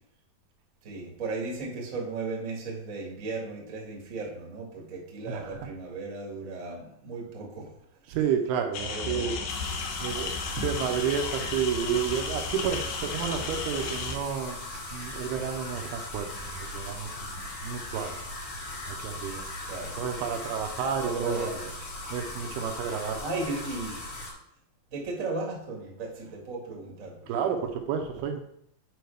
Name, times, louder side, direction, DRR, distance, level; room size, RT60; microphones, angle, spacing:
voice 1, 0.8-7.7 8.9-9.4 19.6-20.0 21.0-21.7 23.2-24.0 24.9-27.3, right 3 dB, 45° right, -1 dB, 1.0 m, -36 dB
voice 2, 5.3-5.7 8.1-9.4 10.0-14.6 14.9-18.2 18.9-19.4 20.0-21.5 22.1-23.2 27.3-28.4, right 7 dB, 80° right, 4 dB, 2.5 m, -31 dB
sound 1, 8.7-14.1, left 5 dB, 85° left, 3.0 m, -34 dB
sound 2, 9.5-24.3, left 2 dB, 50° left, 1.4 m, -38 dB
9.3 x 5.0 x 3.4 m, 0.72 s
omnidirectional pair, 4.7 m